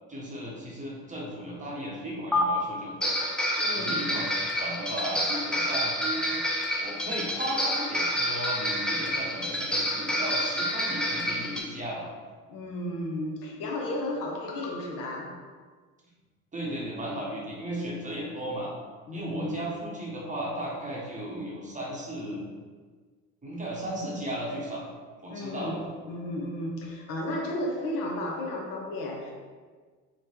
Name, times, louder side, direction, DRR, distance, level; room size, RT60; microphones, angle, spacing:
voice 1, 0.1-12.1 16.5-18.7 19.1-22.5 23.4-24.9 25.2-25.8, right 1 dB, 20° right, -4 dB, 0.8 m, -35 dB
sound 1, 2.3-2.4 3.0-11.6, equal, ahead, 0.4 m, -28 dB
voice 2, 3.6-4.0 12.5-15.4 19.1-19.6 25.3-29.3, left 1 dB, 55° left, 0 dB, 0.6 m, -33 dB
3.0 x 2.2 x 2.8 m, 1.5 s
hypercardioid pair, 65°, 39 cm